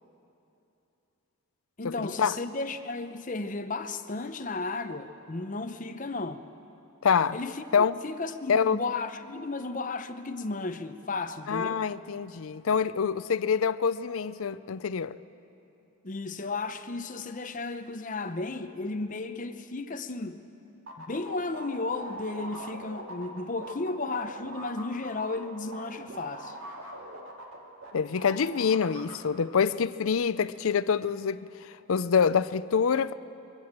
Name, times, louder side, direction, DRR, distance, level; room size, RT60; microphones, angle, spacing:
voice 1, 1.8-6.4 7.3-11.8 16.0-20.4 21.0-26.6, left 3 dB, 35° left, 0.7 m, -34 dB
voice 2, 7.0-7.4 7.7-7.9 8.5-8.8 11.5-15.2 27.9-33.1, left 6 dB, 75° left, 0.5 m, -26 dB
sound 1, 20.9-27.9 28.2-29.1, right 1 dB, 70° right, 2.5 m, -42 dB
23.0 x 16.5 x 7.4 m
head